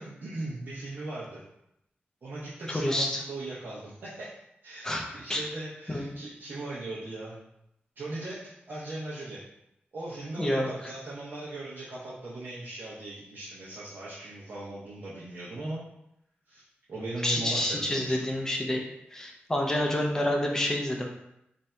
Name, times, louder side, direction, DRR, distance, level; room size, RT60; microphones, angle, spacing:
voice 1, 0.0-1.4 2.2-4.3 4.6-7.4 8.0-9.4 9.9-15.8 16.5-16.6 16.9-18.3, right 2 dB, 60° right, -8 dB, 0.8 m, -38 dB
voice 2, 2.7-3.2 4.8-5.5 5.9-6.1 10.4-10.9 17.2-18.8 19.1-21.1, left 1 dB, 15° left, 0 dB, 0.5 m, -28 dB
3.3 x 2.7 x 4.3 m, 0.81 s
wide cardioid pair, 170°, 4 cm